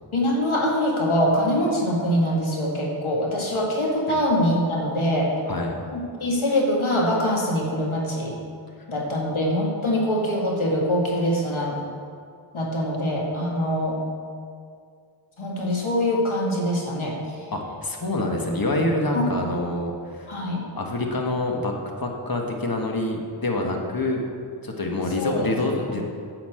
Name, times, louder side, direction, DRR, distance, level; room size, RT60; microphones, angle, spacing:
voice 1, 0.1-5.3 5.9-8.4 8.9-11.8 12.5-14.0 15.4-17.4 19.1-19.3 20.3-20.6 25.2-25.5 25.9-26.0, equal, 80° left, -2 dB, 2.2 m, -24 dB
voice 2, 17.5-20.3 20.8-21.7 22.0-24.3 24.6-26.0, left 2 dB, 45° left, 1 dB, 1.6 m, -26 dB
10.0 x 5.8 x 7.6 m, 2.2 s
wide cardioid pair, 65°, 47 cm